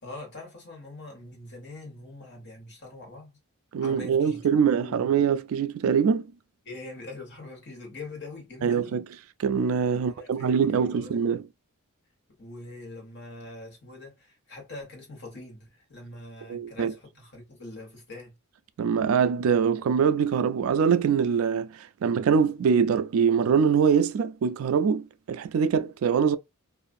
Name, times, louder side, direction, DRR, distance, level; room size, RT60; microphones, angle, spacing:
voice 1, 0.0-3.4 3.8-5.1 6.6-9.0 9.9-11.2 12.4-18.3, left 2 dB, 50° left, 1.6 m, -43 dB
voice 2, 3.7-6.3 8.6-9.0 9.4-11.5 16.5-16.9 18.8-26.4, right 6 dB, 70° right, 0.3 m, -23 dB
2.5 x 2.4 x 2.5 m
head